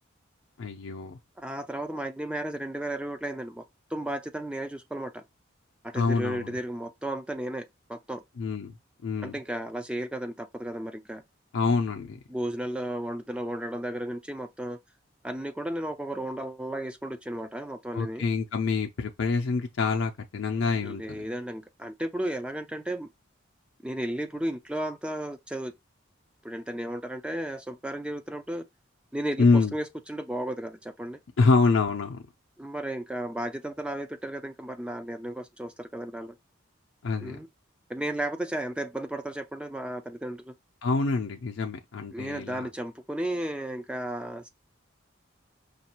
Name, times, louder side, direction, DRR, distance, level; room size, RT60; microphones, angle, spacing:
voice 1, 0.6-1.2 5.9-6.6 8.4-8.7 9.0-9.4 11.5-12.2 17.9-21.2 29.4-29.7 31.4-32.2 37.0-37.4 40.8-42.7, left 4 dB, 85° left, 0.5 m, -26 dB
voice 2, 1.4-3.6 3.9-5.2 5.8-8.2 9.2-11.2 12.3-14.8 15.2-18.3 20.8-23.1 23.8-25.7 26.4-28.6 29.1-31.2 32.6-36.4 37.2-37.5 37.9-40.5 42.1-44.5, right 1 dB, 5° right, 0.3 m, -34 dB
5.2 x 2.4 x 2.9 m
head